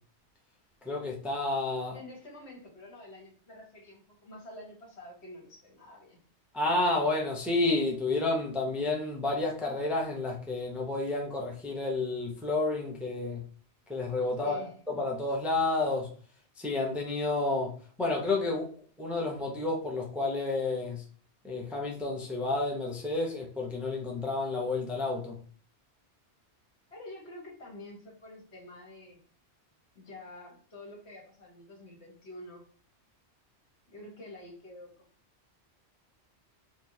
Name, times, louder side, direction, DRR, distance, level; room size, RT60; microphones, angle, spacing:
voice 1, 0.8-2.0 6.5-13.4 13.9-16.1 16.6-17.7 18.0-18.7 19.0-21.0 21.4-25.4, left 2 dB, ahead, 0.6 m, -30 dB
voice 2, 1.9-6.2 14.4-14.7 26.9-29.2 29.9-32.6 33.9-34.9, left 1 dB, 70° left, 1.6 m, -47 dB
4.5 x 2.5 x 2.7 m
omnidirectional pair, 1.2 m